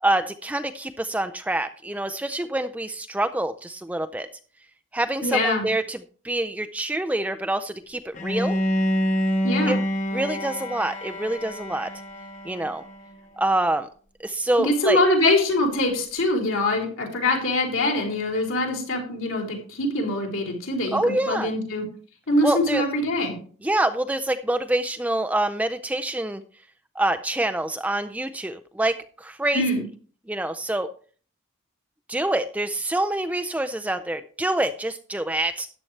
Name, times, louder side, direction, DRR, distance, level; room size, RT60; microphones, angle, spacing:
voice 1, 0.0-4.3 4.9-6.0 6.2-8.6 9.7-9.8 10.1-11.9 12.4-12.8 13.4-13.9 14.2-15.0 20.9-21.5 22.4-22.8 23.6-26.4 27.0-29.7 30.3-30.9 32.1-35.7, right 1 dB, 5° right, 8 dB, 0.4 m, -26 dB
voice 2, 5.2-5.7 9.4-9.8 14.6-21.8 22.3-23.4 29.5-29.8, left 1 dB, 65° left, 0 dB, 4.0 m, -23 dB
Bowed string instrument, 8.1-13.1, equal, 35° left, 1.2 m, -27 dB
13.5 x 10.0 x 3.3 m, 0.43 s
head